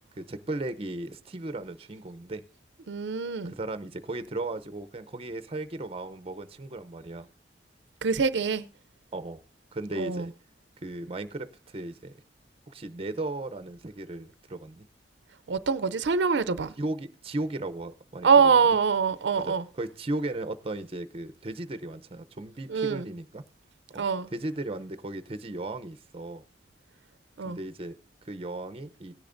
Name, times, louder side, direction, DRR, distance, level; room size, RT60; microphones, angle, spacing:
voice 1, 0.1-2.4 3.4-7.3 9.1-9.4 9.7-10.3 10.8-12.1 12.7-14.9 16.8-18.3 19.4-23.4 23.9-24.1 24.3-26.4 27.4-29.1, right 2 dB, 35° right, 0.6 m, -36 dB
voice 2, 2.9-3.5 8.0-8.6 10.0-10.3 15.5-16.7 18.2-19.6 22.7-23.1 24.0-24.3 27.4-27.6, right 5 dB, 85° right, 0.5 m, -24 dB
17.5 x 10.5 x 2.5 m
head